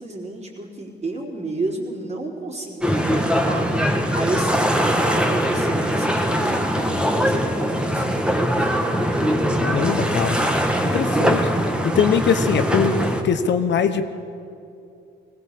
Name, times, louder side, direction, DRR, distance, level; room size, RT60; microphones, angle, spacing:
voice 1, 0.0-3.7 4.1-8.8, right 2 dB, 35° right, -2 dB, 4.2 m, -31 dB
sound 1, 2.8-13.2, equal, 5° right, 1.8 m, -21 dB
voice 2, 9.6-10.4 10.8-11.5 11.8-13.0 13.2-14.1, left 7 dB, 65° left, 9 dB, 1.1 m, -21 dB
19.5 x 17.5 x 7.7 m, 2.6 s
cardioid pair, 90°, 20 cm